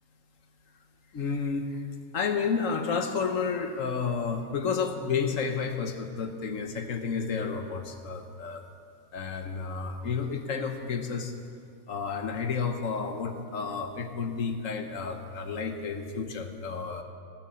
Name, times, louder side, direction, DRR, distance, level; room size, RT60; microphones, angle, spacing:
voice 1, 1.1-1.8 2.1-8.6 9.1-11.3 11.9-17.0, left 5 dB, 70° left, 6 dB, 1.4 m, -31 dB
17.0 x 9.7 x 7.7 m, 2.3 s
omnidirectional pair, 1.4 m